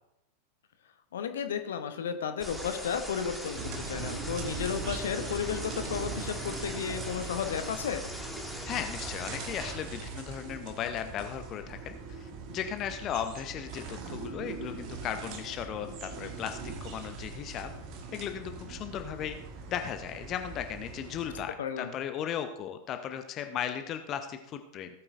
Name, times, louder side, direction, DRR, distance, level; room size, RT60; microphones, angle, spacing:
voice 1, 1.1-8.0 21.6-21.9, left 7 dB, 60° left, 8 dB, 0.9 m, -33 dB
sound 1, 2.4-9.7, equal, 5° right, 1.7 m, -41 dB
sound 2, 3.5-21.5, right 4 dB, 40° right, 1.5 m, -41 dB
voice 2, 8.6-17.7 18.1-19.4 19.7-24.9, left 9 dB, 35° left, 8 dB, 0.7 m, -36 dB
18.0 x 8.8 x 2.6 m, 0.87 s
figure-of-eight pair, 90°, 0 cm